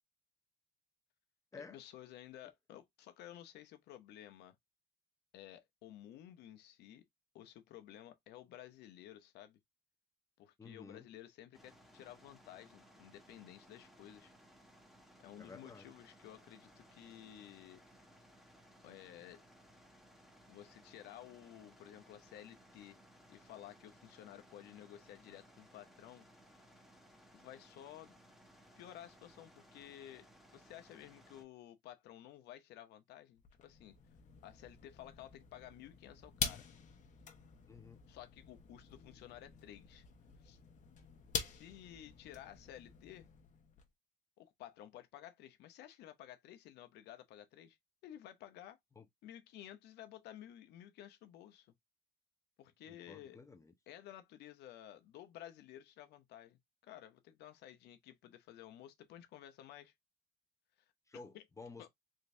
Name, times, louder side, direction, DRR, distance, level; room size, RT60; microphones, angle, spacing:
voice 1, 1.5-4.6 5.3-7.0 7.3-9.6 10.4-14.3 15.2-17.8 18.8-19.4 20.5-23.0 23.3-26.3 26.5-26.7 27.3-28.2 28.8-34.0 34.4-36.6 38.1-40.0 40.4-40.6 41.4-43.3 44.4-47.8 48.0-48.8 49.2-51.7 52.6-53.4 53.9-59.9 61.3-61.4 61.8-61.9, left 12 dB, 80° left, 0.9 m, -54 dB
voice 2, 10.6-11.1 15.4-15.9 37.7-38.0 49.0-49.1 52.9-53.7 61.1-61.9, left 4 dB, 20° left, 0.7 m, -52 dB
sound 1, 11.5-31.4, equal, ahead, 1.2 m, -62 dB
sound 2, 33.4-43.9, left 6 dB, 50° left, 1.0 m, -46 dB
3.8 x 2.6 x 3.2 m
cardioid pair, 110°, 17 cm